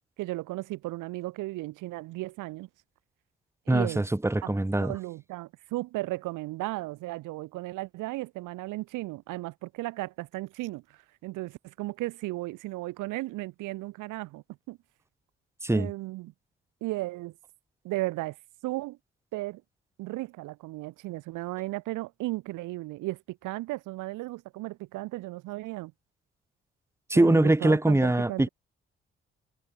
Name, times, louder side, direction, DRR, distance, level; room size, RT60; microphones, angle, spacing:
voice 1, 0.2-2.7 3.7-4.0 4.4-4.5 4.8-14.8 15.7-16.3 16.8-17.3 17.8-18.4 18.6-19.0 19.3-19.6 20.0-25.9 27.1-28.5, right 19 dB, 75° right, 3.0 m, -35 dB
voice 2, 3.7-4.9 15.6-15.9 27.1-28.5, right 2 dB, 10° right, 1.5 m, -23 dB
hypercardioid pair, 40°, 31 cm